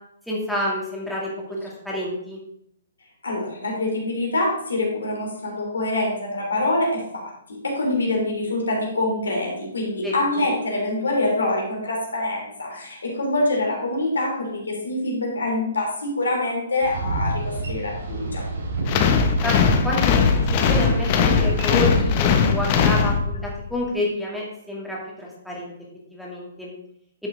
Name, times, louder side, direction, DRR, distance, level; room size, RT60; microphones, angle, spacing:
voice 1, 0.3-1.3 1.6-2.4 10.0-10.1 19.4-19.6 19.8-20.3 20.7-25.7 26.1-26.7, left 1 dB, ahead, -5 dB, 2.4 m, -28 dB
voice 2, 3.2-18.4, left 2 dB, 80° left, -1 dB, 3.2 m, -25 dB
Boat Water vehicle, 16.8-21.9, right 2 dB, 55° right, 3.1 m, -30 dB
sound 1, 18.9-23.6, left 5 dB, 40° left, 1.1 m, -19 dB
10.5 x 6.2 x 3.9 m, 0.74 s
figure-of-eight pair, 130°, 0 cm